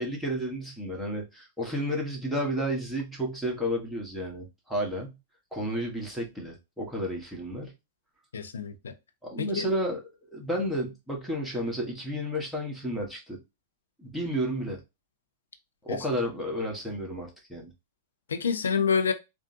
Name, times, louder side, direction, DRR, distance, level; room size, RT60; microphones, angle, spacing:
voice 1, 0.0-5.2 5.5-7.7 9.2-10.0 10.3-13.4 14.0-14.8 15.8-17.7, equal, ahead, 1.4 m, -31 dB
voice 2, 8.3-8.9 9.4-9.7 15.9-16.0 18.3-19.1, left 6 dB, 80° left, 0.6 m, -27 dB
3.6 x 2.3 x 2.7 m
hypercardioid pair, 100°, 0 cm